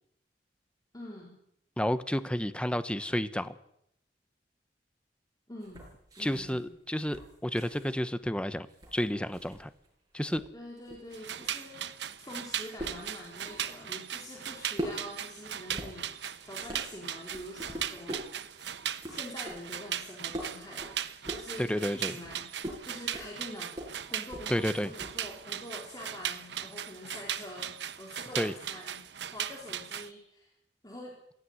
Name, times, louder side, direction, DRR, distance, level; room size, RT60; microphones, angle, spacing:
voice 1, 0.9-1.4 5.5-5.9 6.2-6.8 10.5-11.8 12.2-18.2 19.1-21.0 21.3-22.4 22.8-23.8 24.1-29.0 29.3-30.5 30.8-31.1, left 1 dB, 20° left, -2 dB, 4.2 m, -45 dB
voice 2, 1.8-3.5 6.2-8.7 8.9-9.7 10.1-10.4 21.6-22.1 24.5-24.9 28.4-28.5, equal, 5° left, 13 dB, 1.0 m, -31 dB
sound 1, 5.6-9.9 10.1-25.5, equal, 20° right, 7.9 m, -44 dB
sound 2, 11.1-30.1, right 10 dB, 75° right, 1.0 m, -38 dB
18.0 x 16.5 x 9.6 m, 0.75 s
head